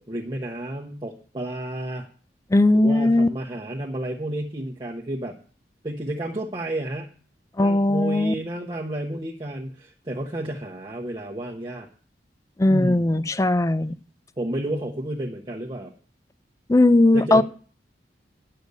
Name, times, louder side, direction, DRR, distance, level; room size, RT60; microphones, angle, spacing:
voice 1, 0.0-2.1 2.7-5.4 5.8-7.1 7.6-11.9 12.7-13.3 14.4-15.9 17.1-17.4, right 1 dB, 25° right, -2 dB, 1.0 m, -31 dB
voice 2, 2.5-3.3 7.6-8.3 12.6-14.0 16.7-17.4, left 2 dB, 20° left, 16 dB, 0.4 m, -18 dB
10.0 x 6.7 x 8.2 m, 0.42 s
head